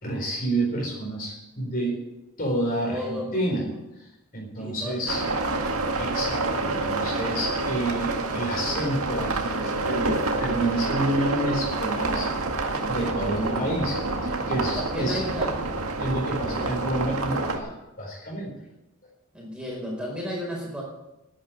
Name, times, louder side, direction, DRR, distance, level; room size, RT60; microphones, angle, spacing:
voice 1, 0.0-2.0 2.4-3.6 4.0-5.2 6.0-15.2 16.0-18.5, right 1 dB, 40° left, -1 dB, 4.3 m, -29 dB
voice 2, 2.8-3.8 4.6-5.6 13.3-13.7 14.7-15.6 16.6-16.7 19.3-20.8, equal, 5° right, -3 dB, 4.9 m, -34 dB
sound 1, 5.1-17.6, right 3 dB, 80° right, 1.9 m, -28 dB
11.0 x 10.0 x 9.2 m, 0.93 s
head